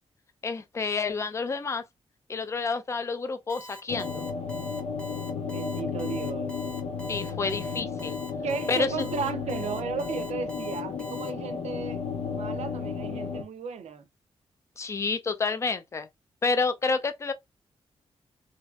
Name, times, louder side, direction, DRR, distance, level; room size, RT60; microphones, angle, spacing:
voice 1, 0.4-1.8 2.3-4.2 7.1-8.2 8.7-8.9 14.8-16.1 16.4-17.3, left 4 dB, 25° left, 0.3 m, -29 dB
Alarm, 3.5-11.3, left 1 dB, 10° left, 0.7 m, -45 dB
sound 1, 3.9-13.4, left 5 dB, 80° left, 0.5 m, -33 dB
voice 2, 5.5-6.6 8.4-12.0 12.3-14.1, right 6 dB, 85° right, 0.5 m, -35 dB
2.9 x 2.5 x 2.3 m
wide cardioid pair, 175°, 11 cm